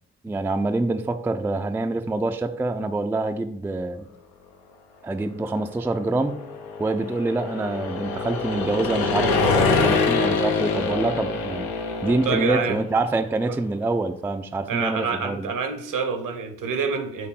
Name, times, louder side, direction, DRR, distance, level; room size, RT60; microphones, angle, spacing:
voice 1, 0.2-4.1 5.0-6.4 6.8-11.7 12.0-15.5, right 2 dB, 5° right, 8 dB, 0.3 m, -26 dB
sound 1, 5.9-12.9, left 4 dB, 85° left, 0.6 m, -25 dB
voice 2, 12.0-12.8 13.5-13.6 14.7-17.3, right 5 dB, 65° right, 7 dB, 0.8 m, -27 dB
4.4 x 2.6 x 4.0 m, 0.67 s
hypercardioid pair, 40°, 35 cm